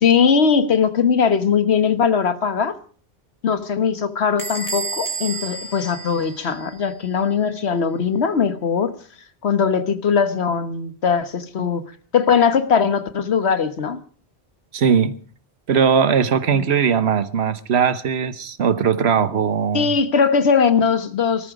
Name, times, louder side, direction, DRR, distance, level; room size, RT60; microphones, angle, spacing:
voice 1, 0.0-2.8 3.4-8.9 9.4-11.8 12.1-14.0 16.5-16.7 19.7-21.5, left 6 dB, 80° left, 1.5 m, -20 dB
Bell / Squeak, 4.4-6.9, right 4 dB, 20° right, 2.1 m, -31 dB
voice 2, 14.7-15.1 15.7-19.9, right 7 dB, 75° right, 1.3 m, -19 dB
20.0 x 13.5 x 5.0 m
omnidirectional pair, 1.1 m